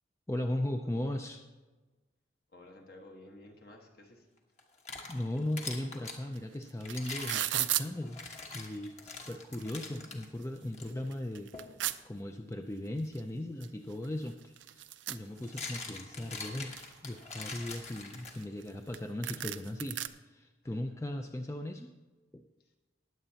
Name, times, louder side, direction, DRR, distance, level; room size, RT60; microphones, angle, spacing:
voice 1, 0.3-1.4 5.1-8.2 8.5-21.9 22.3-22.4, left 1 dB, 15° left, 5 dB, 0.4 m, -38 dB
voice 2, 2.5-4.3 4.8-4.9 9.3-9.7 20.6-21.0 22.6-22.7, left 1 dB, 55° left, 1 dB, 1.5 m, -55 dB
sound 1, 4.6-6.2 6.8-10.3 10.7-10.9 11.5-11.8 13.9-14.0 15.2-18.7, left 4 dB, 35° left, 1.3 m, -44 dB
sound 2, 6.4-6.5 6.6-7.9 8.7-8.8 9.2-10.0 10.4-10.5 10.9-12.0 13.2-13.3 13.6-13.7 13.9-15.9 16.3-16.9 17.5-18.7 18.9-19.0 19.2-20.1, right 14 dB, 80° right, 0.5 m, -35 dB
20.0 x 7.9 x 2.8 m, 1.2 s
head